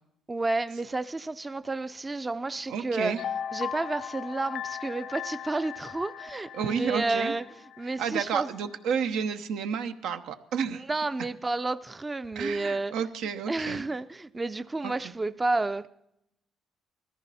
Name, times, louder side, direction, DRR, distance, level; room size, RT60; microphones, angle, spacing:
voice 1, 0.3-3.2 3.5-7.4 7.8-8.5 10.9-12.9 13.5-15.9, right 3 dB, 20° right, 0.5 m, -31 dB
voice 2, 2.7-3.2 6.5-7.3 8.0-10.8 12.3-13.9 14.8-14.9, right 7 dB, 85° right, 1.0 m, -31 dB
sound 1, 3.2-8.4 8.7-8.9, left 9 dB, 65° left, 0.5 m, -38 dB
20.0 x 14.5 x 4.2 m
cardioid pair, 100°, 0 cm